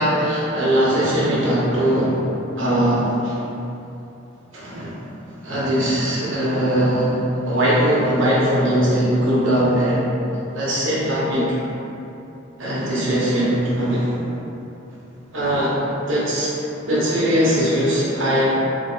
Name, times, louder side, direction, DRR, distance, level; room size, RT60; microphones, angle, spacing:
voice 1, 0.0-2.2 2.6-3.3 4.5-4.9 5.4-7.2 7.4-10.0 10.5-11.4 12.6-14.2 15.3-15.7 16.1-16.5 16.9-18.4, equal, 80° right, -8 dB, 1.1 m, -20 dB
4.4 x 2.6 x 2.8 m, 2.9 s
head